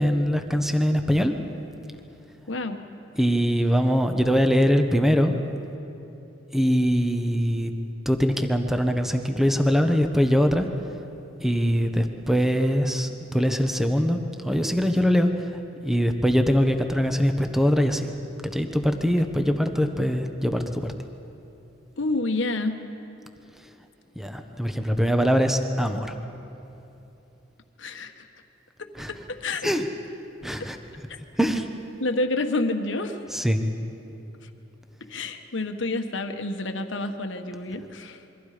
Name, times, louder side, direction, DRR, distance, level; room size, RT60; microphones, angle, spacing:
voice 1, 0.0-1.3 3.2-5.4 6.5-7.7 8.0-10.7 11.4-18.1 18.5-20.9 24.2-26.2 28.9-29.1 29.6-29.9 30.4-30.8 31.4-31.7 33.3-33.6, equal, ahead, 6 dB, 1.1 m, -22 dB
voice 2, 2.5-2.8 22.0-22.8 27.8-28.1 29.1-29.7 32.0-33.2 35.1-38.3, left 2 dB, 70° left, 6 dB, 1.4 m, -28 dB
27.5 x 23.5 x 5.1 m, 2.9 s
head